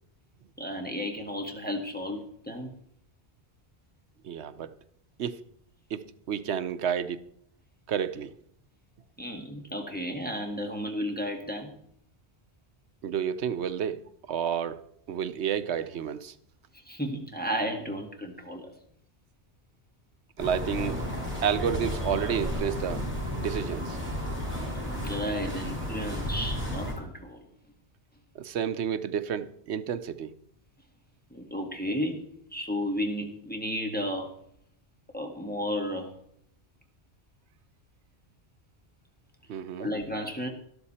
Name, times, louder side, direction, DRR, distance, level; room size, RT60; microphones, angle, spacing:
voice 1, 0.6-2.7 9.2-11.8 16.9-18.7 24.7-27.5 31.3-32.2 32.5-34.3 35.1-36.1 39.8-40.5, equal, 10° left, 1.8 m, -33 dB
voice 2, 4.2-4.7 5.2-5.4 5.9-7.2 7.9-8.3 13.0-14.0 14.3-14.8 15.1-16.3 20.4-21.0 21.4-23.1 23.3-24.0 28.3-30.3 39.5-39.9, right 8 dB, 75° right, 1.0 m, -30 dB
sound 1, 20.4-26.9, equal, 10° right, 5.2 m, -33 dB
12.5 x 12.5 x 4.3 m
omnidirectional pair, 1.1 m